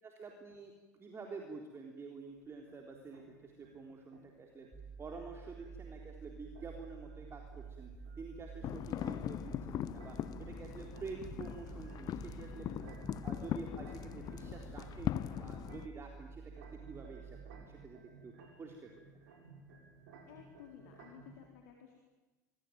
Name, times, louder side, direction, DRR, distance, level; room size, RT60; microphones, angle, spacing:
voice 1, 0.0-4.7 5.0-13.0 13.2-16.4 16.9-18.3 18.6-19.2, right 4 dB, 25° right, 2 dB, 4.1 m, -49 dB
sound 1, 2.3-21.5, right 4 dB, 65° right, 6.7 m, -59 dB
sound 2, 4.7-17.7, right 5 dB, 5° right, 7.3 m, -51 dB
sound 3, 8.6-15.9, left 11 dB, 40° left, 1.1 m, -40 dB
voice 2, 20.3-22.0, left 10 dB, 65° left, 2 dB, 4.2 m, -55 dB
27.5 x 23.5 x 9.3 m, 1.1 s
figure-of-eight pair, 75°, 10 cm